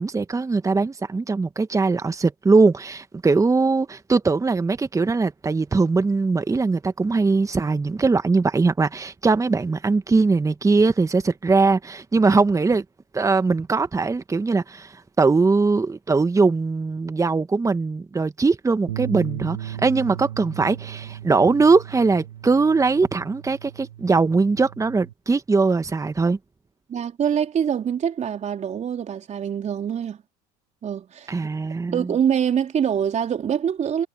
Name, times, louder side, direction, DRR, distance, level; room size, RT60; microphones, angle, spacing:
voice 1, 0.0-12.8 13.1-26.4 31.3-32.1, right 4 dB, 15° right, 1.8 m, -21 dB
sound 1, 18.9-25.1, right 12 dB, 75° right, 3.3 m, -36 dB
voice 2, 26.9-30.2 30.8-31.4 31.9-34.1, right 8 dB, 35° right, 3.6 m, -24 dB
hypercardioid pair, 80°, 21 cm